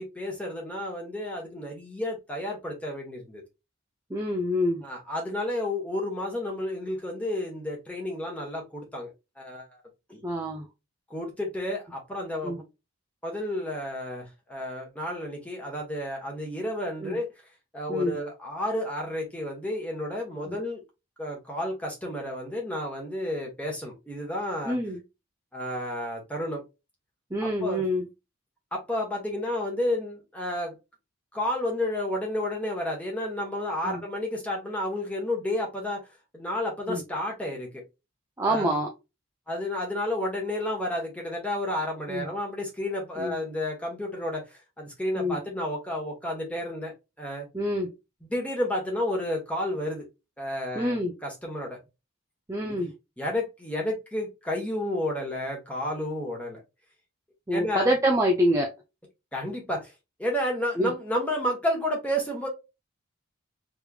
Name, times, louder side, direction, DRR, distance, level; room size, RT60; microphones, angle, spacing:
voice 1, 0.0-3.4 4.8-9.1 9.4-9.7 10.1-10.2 11.1-12.6 13.2-17.3 17.7-20.8 21.2-24.8 25.5-26.6 27.6-27.8 28.7-30.7 31.3-36.0 36.3-37.8 38.5-38.7 39.5-46.9 47.2-47.5 48.3-50.0 50.4-51.0 51.2-51.8 52.6-52.8 53.2-56.6 57.5-57.9 59.3-59.9 60.2-62.5, left 1 dB, 5° left, 1.2 m, -31 dB
voice 2, 4.1-4.8 10.2-10.7 12.4-12.6 17.0-17.2 17.9-18.2 20.5-20.6 24.6-25.0 27.3-28.1 33.8-34.0 36.9-37.0 38.4-38.9 42.1-42.3 43.2-43.4 45.2-45.4 47.5-47.9 50.7-51.1 52.5-52.9 57.5-58.7 60.8-60.9, equal, 15° right, 0.5 m, -26 dB
3.5 x 3.3 x 2.4 m
head